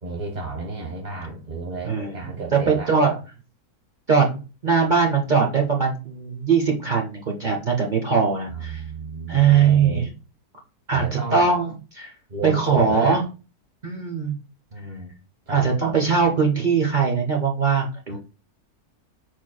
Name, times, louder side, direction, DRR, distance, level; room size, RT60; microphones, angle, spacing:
voice 1, 0.0-2.9 8.5-10.1 10.9-11.5 12.3-13.2 14.7-15.1 15.5-15.7 18.1-18.2, right 3 dB, 35° right, -1 dB, 1.0 m, -32 dB
voice 2, 1.8-2.2 2.5-3.2 4.1-4.3 4.6-8.8 9.3-10.1 10.9-12.1 12.4-13.2 13.8-14.3 15.5-18.2, right 6 dB, 55° right, 0 dB, 0.5 m, -21 dB
4.5 x 4.4 x 2.2 m, 0.32 s
omnidirectional pair, 1.6 m